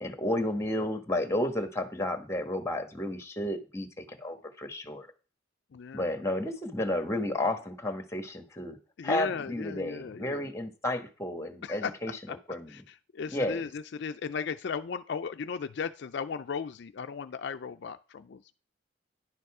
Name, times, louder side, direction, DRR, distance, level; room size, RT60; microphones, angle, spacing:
voice 1, 0.0-5.1 5.9-8.8 9.0-12.7 13.3-13.6, left 1 dB, 15° left, 7 dB, 1.2 m, -32 dB
voice 2, 5.7-6.1 9.0-10.5 11.6-11.9 12.3-12.4 12.7-18.5, left 6 dB, 60° left, 9 dB, 0.4 m, -36 dB
10.5 x 6.7 x 4.8 m, 0.36 s
head